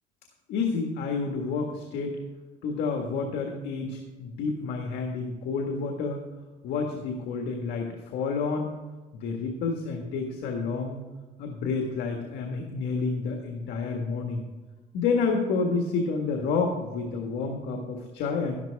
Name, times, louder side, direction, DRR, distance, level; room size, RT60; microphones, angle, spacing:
voice 1, 0.5-2.2 2.6-6.2 6.6-8.7 9.1-11.0 11.4-14.4 14.9-18.6, left 4 dB, 85° left, 2 dB, 1.7 m, -29 dB
12.5 x 12.0 x 3.5 m, 1.3 s
cardioid pair, 110°, 17 cm